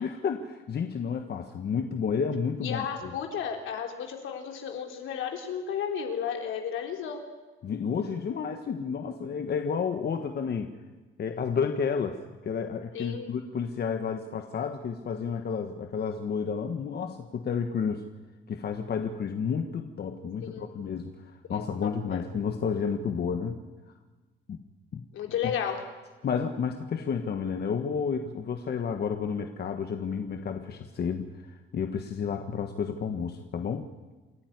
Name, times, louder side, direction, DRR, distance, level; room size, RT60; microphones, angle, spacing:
voice 1, 0.0-3.1 7.6-10.7 11.2-18.0 18.5-23.6 24.5-24.6 24.9-25.0 26.2-33.9, left 6 dB, 55° left, 6 dB, 1.5 m, -31 dB
voice 2, 2.6-7.2 12.9-13.3 20.4-20.7 21.5-22.2 25.1-25.8, left 8 dB, 80° left, 3 dB, 3.8 m, -33 dB
28.5 x 11.5 x 9.6 m, 1.3 s
cardioid pair, 90°, 20 cm